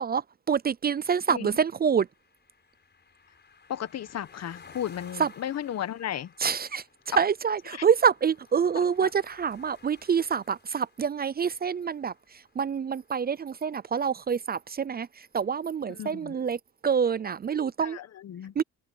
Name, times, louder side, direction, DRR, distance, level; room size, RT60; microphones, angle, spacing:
voice 1, 0.0-2.1 5.2-5.3 6.4-18.0 18.6-18.7, right 6 dB, 30° right, 0.5 m, -27 dB
sound 1, 1.1-13.1, left 5 dB, 35° left, 5.5 m, -55 dB
voice 2, 3.7-6.3 7.1-7.2 7.7-7.8 9.0-9.1 16.0-16.4 17.8-18.5, left 10 dB, 60° left, 1.2 m, -34 dB
cardioid pair, 90°, 30 cm